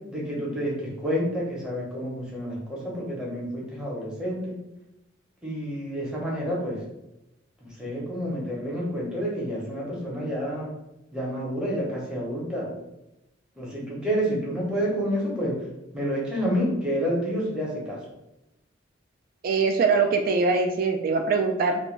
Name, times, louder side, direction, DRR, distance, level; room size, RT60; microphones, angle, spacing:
voice 1, 0.1-4.5 5.4-6.8 7.6-10.7 11.1-12.7 13.6-15.6 15.9-18.0, equal, 5° right, -5 dB, 0.8 m, -29 dB
voice 2, 19.4-21.8, right 4 dB, 50° right, 5 dB, 0.3 m, -22 dB
2.5 x 2.2 x 3.1 m, 0.89 s
head